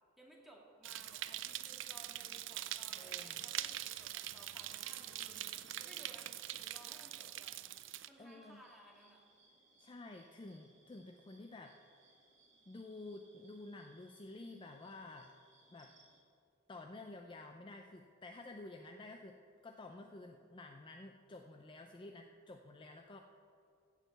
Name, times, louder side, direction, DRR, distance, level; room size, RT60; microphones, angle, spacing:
voice 1, 0.2-7.6 8.1-9.2, right 1 dB, ahead, -2 dB, 1.8 m, -60 dB
sound 1, 0.8-8.1, right 13 dB, 80° right, 0.4 m, -44 dB
sound 2, 2.2-16.2, right 3 dB, 40° right, 2.1 m, -67 dB
voice 2, 3.0-3.4 8.2-8.6 9.8-11.8 12.0-12.2 12.7-15.3 15.7-15.9 16.7-19.4 19.6-23.2, left 2 dB, 25° left, 4 dB, 0.5 m, -51 dB
14.5 x 4.9 x 8.0 m, 2.3 s
head